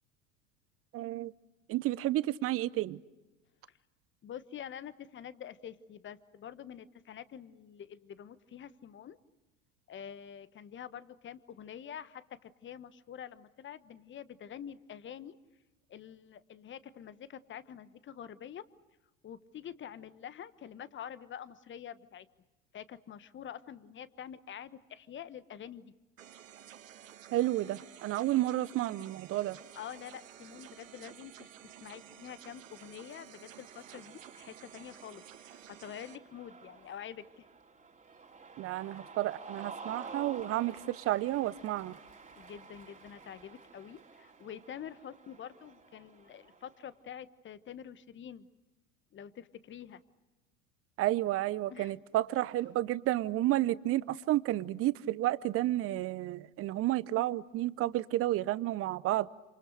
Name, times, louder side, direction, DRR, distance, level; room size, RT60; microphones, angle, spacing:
voice 1, 0.9-1.3 1.7-3.0 27.3-29.6 38.6-42.0 51.0-59.3, right 15 dB, 35° right, 19 dB, 0.8 m, -31 dB
voice 2, 4.2-9.2 9.9-15.3 15.9-18.6 19.2-22.3 22.7-25.9 29.7-37.5 42.4-48.5 49.1-50.0 51.7-51.9, left 9 dB, 30° left, 15 dB, 1.3 m, -47 dB
sound 1, 26.2-36.2, right 10 dB, 75° right, 1.4 m, -53 dB
Cheering, 33.4-46.9, right 4 dB, 20° right, 3.2 m, -51 dB
28.0 x 27.0 x 6.6 m, 1.1 s
figure-of-eight pair, 75°, 39 cm